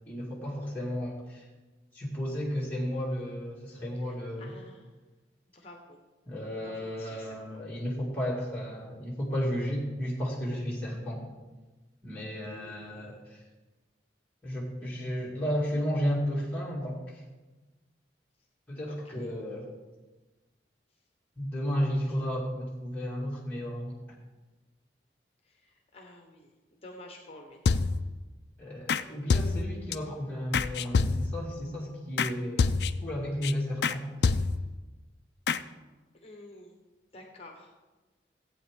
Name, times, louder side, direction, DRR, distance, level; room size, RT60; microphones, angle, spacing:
voice 1, 0.1-1.4 1.9-4.5 6.3-11.2 12.0-13.4 14.4-17.2 18.7-19.6 21.4-24.0 28.6-32.7 33.0-34.3, equal, 10° left, -6 dB, 2.0 m, -33 dB
voice 2, 4.0-4.9 5.5-6.0 6.6-7.6 12.4-13.1 18.9-19.3 25.4-27.6 36.1-36.7 37.1-37.7, left 1 dB, 35° left, 2 dB, 1.1 m, -50 dB
sound 1, 27.7-28.2 28.9-29.0 29.3-30.0 30.5-31.5 32.2-32.3 32.6-33.1 33.4-33.5 33.8-34.0 34.2-34.8 35.5-35.6, left 4 dB, 70° left, 0.4 m, -26 dB
15.0 x 8.5 x 3.6 m, 1.2 s
head